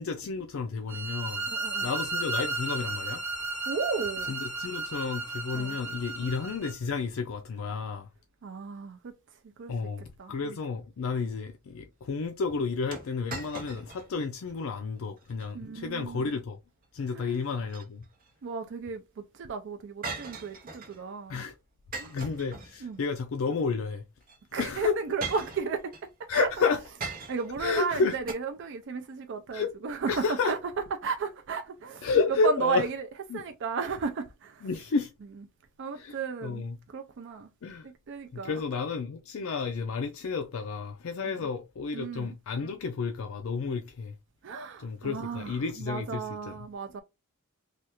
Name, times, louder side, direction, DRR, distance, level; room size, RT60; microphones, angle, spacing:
voice 1, 0.0-1.5 1.8-3.2 4.3-8.1 9.7-16.6 16.9-18.0 21.3-21.5 22.1-24.0 24.6-24.9 26.3-26.8 27.6-28.2 29.5-29.7 30.1-30.5 32.0-32.8 33.3-33.4 34.6-35.1 36.0-36.1 36.4-36.8 37.6-37.9 38.3-44.1 44.8-46.5, left 4 dB, 70° left, 0.4 m, -31 dB
sound 1, 0.9-6.7, right 2 dB, 75° right, 1.3 m, -34 dB
voice 2, 1.5-1.9 3.7-4.3 5.5-5.8 6.2-6.3 8.4-9.8 10.2-10.6 15.5-16.4 17.1-17.4 18.4-21.4 22.0-22.2 22.8-23.0 24.5-26.5 27.3-30.6 31.0-32.1 32.4-33.1 33.3-34.7 35.8-37.5 37.8-38.6 41.2-41.5 41.9-42.4 44.4-47.0, right 5 dB, 60° right, 0.4 m, -34 dB
sound 2, 12.9-14.1 14.5-14.6 15.2-15.5 17.4-18.3 20.0-21.0 21.9-23.1 24.2-24.4 25.2-26.1 27.0-27.6 28.3-28.4, right 4 dB, 40° right, 0.8 m, -39 dB
3.3 x 2.3 x 2.8 m
head